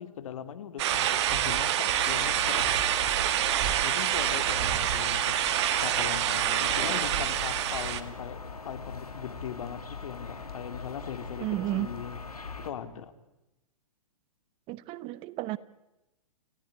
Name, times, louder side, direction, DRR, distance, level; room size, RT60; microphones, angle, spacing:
voice 1, 0.0-2.7 3.8-5.4 5.8-11.5 11.7-13.1, left 8 dB, 60° left, 10 dB, 2.8 m, -40 dB
sound 1, 0.8-8.0, right 11 dB, 50° right, 2.1 m, -27 dB
sound 2, 1.9-12.7, left 4 dB, 90° left, 3.0 m, -41 dB
voice 2, 11.4-11.9 14.7-15.6, right 17 dB, 30° right, 18 dB, 1.0 m, -32 dB
29.0 x 16.5 x 9.6 m, 1.0 s
hypercardioid pair, 125°, 19 cm